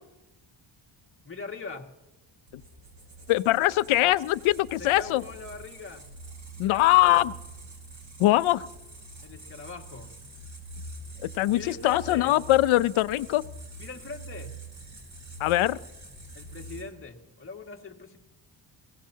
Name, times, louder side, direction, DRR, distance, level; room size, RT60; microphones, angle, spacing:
voice 1, 1.2-1.9 4.8-6.1 6.6-7.2 9.2-10.1 11.5-12.4 13.8-14.5 16.3-18.2, left 4 dB, 25° left, 1 dB, 2.0 m, -41 dB
sound 1, 2.5-16.8, right 2 dB, 35° right, 5.5 m, -45 dB
voice 2, 3.3-5.2 6.6-7.3 8.2-8.6 11.2-13.4 15.4-15.8, left 16 dB, 80° left, 16 dB, 0.7 m, -22 dB
23.0 x 17.0 x 2.8 m, 0.99 s
cardioid pair, 115°, 48 cm